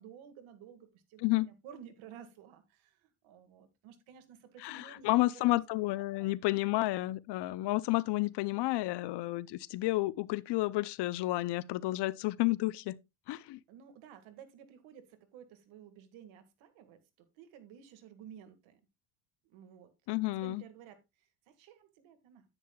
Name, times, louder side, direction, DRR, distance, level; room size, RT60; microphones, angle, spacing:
voice 1, 0.0-5.5 6.1-6.3 13.7-18.8 19.4-19.9 20.3-22.5, right 8 dB, 70° right, 1.9 m, -54 dB
voice 2, 4.6-13.0 13.3-13.6 20.1-20.6, left 19 dB, 55° left, 0.6 m, -31 dB
9.9 x 9.4 x 2.3 m
cardioid pair, 110°, 49 cm